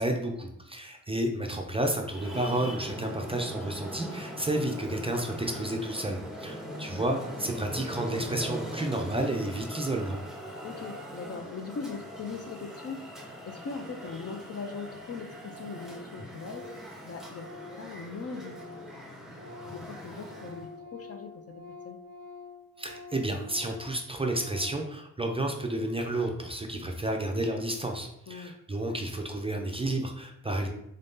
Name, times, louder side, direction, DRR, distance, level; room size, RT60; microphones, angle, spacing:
voice 1, 0.0-10.2 22.8-30.7, right 1 dB, 15° right, 2 dB, 0.4 m, -31 dB
Traffic noise roadway noise, 2.1-20.7, equal, ahead, 0.8 m, -41 dB
voice 2, 6.7-7.0 10.6-13.1 13.4-16.7 17.0-18.7 19.7-22.0 28.3-28.6, left 4 dB, 45° left, 6 dB, 0.4 m, -40 dB
Organ, 14.0-14.1 14.3-14.4 14.7-15.1 15.3-18.9 19.2-24.9, left 3 dB, 65° left, 0.8 m, -48 dB
3.8 x 2.6 x 3.6 m, 0.78 s
wide cardioid pair, 130°, 34 cm